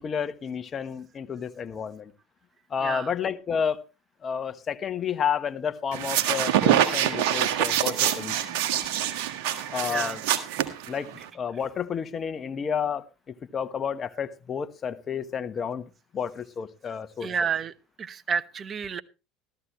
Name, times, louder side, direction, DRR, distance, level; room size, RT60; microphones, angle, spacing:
voice 1, 0.0-2.1 2.7-3.8 4.2-8.6 9.7-10.2 10.9-17.3, left 7 dB, 35° left, 11 dB, 1.1 m, -31 dB
voice 2, 2.8-3.1 9.9-10.2 11.2-11.3 17.2-19.0, right 6 dB, 35° right, 15 dB, 1.0 m, -30 dB
sound 1, 5.9-11.3, right 11 dB, 70° right, 1.6 m, -25 dB
14.5 x 13.5 x 3.1 m, 0.29 s
hypercardioid pair, 75°, 0 cm